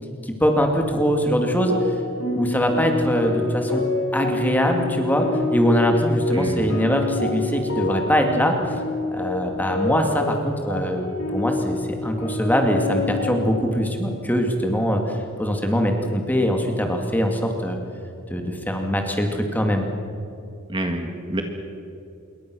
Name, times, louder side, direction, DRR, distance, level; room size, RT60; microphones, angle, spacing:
voice 1, 0.2-1.8 2.3-3.8 4.1-8.8 9.1-17.8 18.3-19.9, equal, 10° left, 3 dB, 2.4 m, -22 dB
sound 1, 1.5-13.6, left 2 dB, 80° left, 5.4 m, -27 dB
voice 2, 6.3-6.7 20.7-21.4, right 1 dB, 25° right, 4 dB, 1.7 m, -27 dB
27.0 x 22.5 x 6.3 m, 2.8 s
head